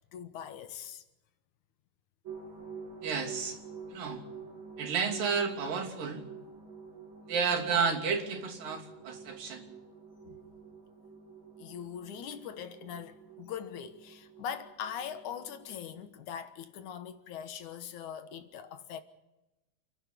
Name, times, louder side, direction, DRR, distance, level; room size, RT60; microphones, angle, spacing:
voice 1, 0.1-1.0 10.2-10.4 11.6-19.0, left 8 dB, 70° left, 2.5 m, -41 dB
sound 1, 2.2-16.1, right 5 dB, 35° right, 3.4 m, -48 dB
voice 2, 3.0-3.6 3.9-4.2 4.8-6.2 7.3-9.7, right 5 dB, 85° right, 4.7 m, -31 dB
29.0 x 11.0 x 8.5 m
omnidirectional pair, 3.9 m